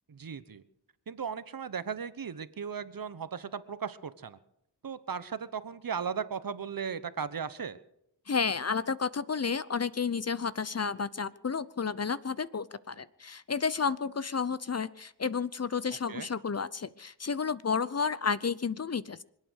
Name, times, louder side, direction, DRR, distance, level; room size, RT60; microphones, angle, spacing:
voice 1, 0.1-0.6 1.1-4.4 4.8-7.8 16.1-16.3, right 6 dB, 50° right, 14 dB, 1.1 m, -36 dB
voice 2, 8.3-19.2, left 5 dB, 35° left, 17 dB, 0.7 m, -31 dB
25.0 x 8.9 x 6.5 m, 0.78 s
cardioid pair, 55°, 44 cm